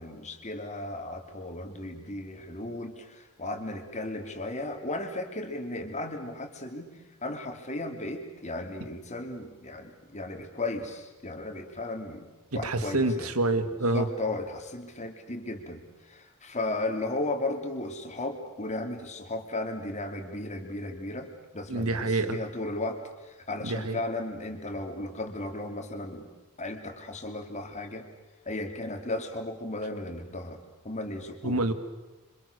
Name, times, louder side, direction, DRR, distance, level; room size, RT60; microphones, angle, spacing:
voice 1, 0.0-6.9 7.2-12.3 12.5-13.3 13.9-26.3 26.6-28.1 28.4-31.6, left 2 dB, 35° left, 4 dB, 3.1 m, -35 dB
voice 2, 12.5-14.1 21.7-22.4 23.6-24.0 31.4-31.7, right 2 dB, 80° right, 10 dB, 2.0 m, -27 dB
27.5 x 25.5 x 6.8 m, 1.2 s
head